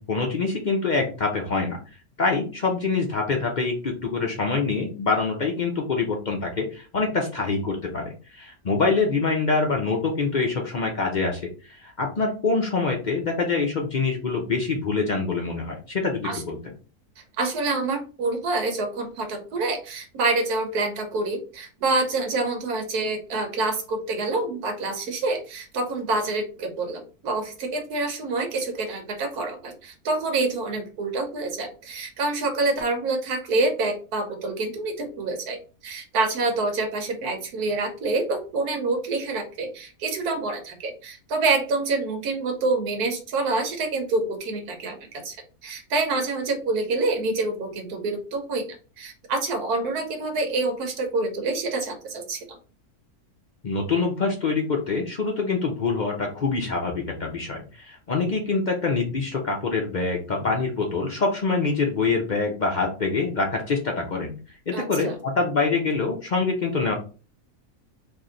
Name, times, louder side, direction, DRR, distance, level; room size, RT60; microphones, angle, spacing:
voice 1, 0.1-1.8 2.2-16.6 53.6-64.4 64.7-66.9, left 4 dB, 55° left, 0 dB, 0.5 m, -25 dB
voice 2, 17.4-35.6 35.8-45.0 45.2-45.4 45.6-48.7 49.0-52.6 64.7-65.1, right 3 dB, 90° right, 4 dB, 1.4 m, -27 dB
3.1 x 2.6 x 3.8 m, 0.35 s
omnidirectional pair, 1.6 m